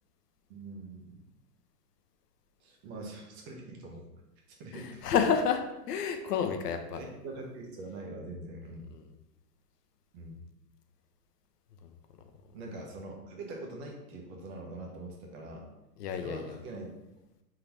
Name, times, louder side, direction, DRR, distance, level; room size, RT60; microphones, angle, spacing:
voice 1, 0.5-1.2 2.6-4.1 4.5-5.1 6.9-8.9 10.1-10.4 12.5-15.7 16.2-16.9, right 2 dB, 45° right, 0 dB, 1.0 m, -43 dB
voice 2, 4.7-5.6 5.9-7.0 8.9-9.1 11.8-11.9 16.0-16.5, left 7 dB, 80° left, 7 dB, 0.7 m, -30 dB
3.7 x 3.3 x 3.0 m, 0.96 s
hypercardioid pair, 130°, 47 cm